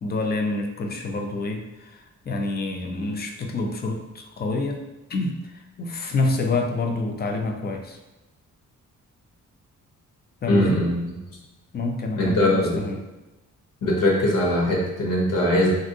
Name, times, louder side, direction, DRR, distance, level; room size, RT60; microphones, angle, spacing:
voice 1, 0.0-4.8 5.1-8.0 10.4-10.9 11.7-13.0, left 2 dB, 30° left, 3 dB, 0.4 m, -27 dB
voice 2, 10.5-11.0 12.2-12.8 13.8-15.7, left 1 dB, 85° left, -2 dB, 0.9 m, -21 dB
3.1 x 2.6 x 2.6 m, 1.0 s
cardioid pair, 110°, 32 cm